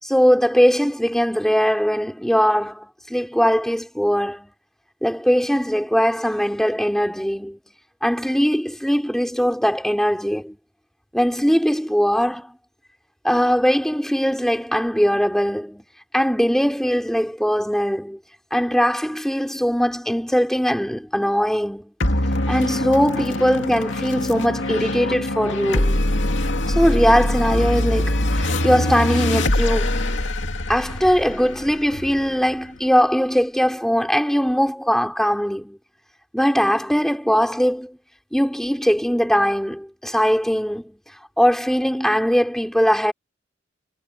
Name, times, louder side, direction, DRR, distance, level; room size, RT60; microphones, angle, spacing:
voice 1, 0.0-4.5 5.0-7.6 8.0-10.6 11.1-12.6 13.2-15.9 16.1-18.2 18.5-21.9 22.5-26.0 26.7-30.0 30.7-35.8 36.3-38.0 38.3-41.0 41.4-43.1, equal, ahead, 4.3 m, -20 dB
sound 1, 22.0-32.8, left 1 dB, 65° left, 2.7 m, -23 dB
head